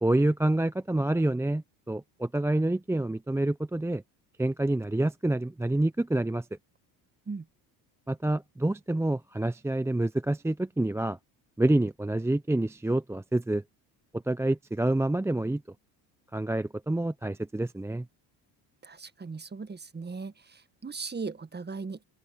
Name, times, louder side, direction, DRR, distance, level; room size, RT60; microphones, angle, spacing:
voice 1, 0.0-4.0 4.4-6.5 8.1-11.2 11.6-13.6 14.1-15.6 16.3-18.1, right 1 dB, 5° right, 0.6 m, -27 dB
voice 2, 18.8-22.0, right 4 dB, 20° right, 1.6 m, -38 dB
supercardioid pair, 85°, 46 cm